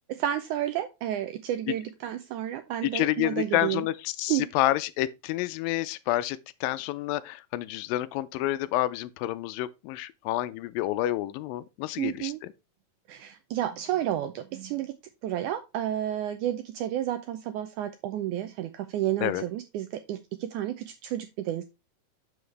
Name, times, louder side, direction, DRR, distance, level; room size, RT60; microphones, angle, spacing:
voice 1, 0.1-3.9 4.3-4.5 12.0-12.4 13.1-14.9 15.2-21.6, right 12 dB, 85° right, 1.8 m, -31 dB
voice 2, 2.9-12.3 19.2-19.4, left 15 dB, 85° left, 2.2 m, -29 dB
7.1 x 6.2 x 3.2 m
omnidirectional pair, 4.0 m